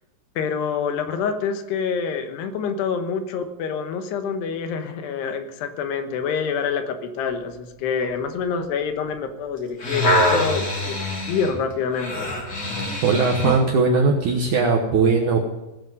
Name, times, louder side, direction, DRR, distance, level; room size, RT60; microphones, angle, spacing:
voice 1, 0.4-11.0 11.3-12.3, left 6 dB, 75° left, 7 dB, 3.2 m, -27 dB
sound 1, 9.6-13.7 14.3-14.4, left 1 dB, 25° left, 3.3 m, -24 dB
voice 2, 13.0-15.4, right 4 dB, 70° right, 2 dB, 1.9 m, -19 dB
17.0 x 7.4 x 7.7 m, 1.0 s
omnidirectional pair, 5.0 m